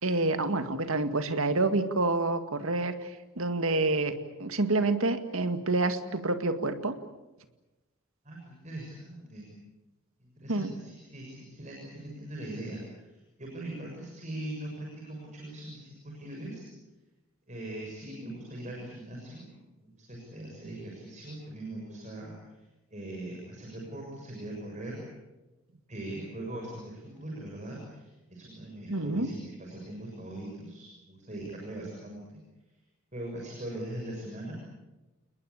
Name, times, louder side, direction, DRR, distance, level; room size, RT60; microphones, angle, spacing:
voice 1, 0.0-4.1 4.4-7.0 10.5-10.7 28.9-29.3, right 2 dB, 70° right, 9 dB, 2.1 m, -28 dB
voice 2, 8.3-9.6 10.2-13.1 13.4-16.7 17.5-19.5 19.8-22.3 22.9-25.0 25.9-32.4 33.1-34.6, right 1 dB, 35° right, -1 dB, 6.9 m, -41 dB
29.5 x 20.5 x 8.6 m, 1.1 s
head